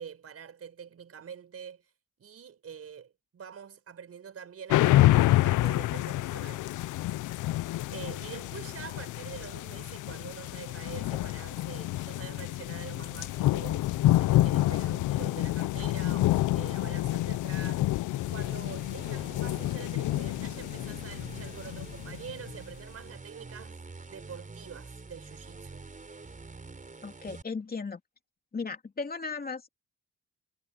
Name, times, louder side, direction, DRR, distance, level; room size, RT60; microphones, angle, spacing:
voice 1, 0.0-1.8 2.2-6.6 7.9-17.9 18.3-23.8 24.1-25.8, right 7 dB, 50° right, 5.1 m, -45 dB
sound 1, 4.7-22.5, left 16 dB, 80° left, 0.7 m, -28 dB
sound 2, 18.1-27.4, right 3 dB, 25° right, 5.4 m, -46 dB
voice 2, 27.0-28.0 28.5-29.7, left 4 dB, 30° left, 2.9 m, -36 dB
cardioid pair, 90°, 30 cm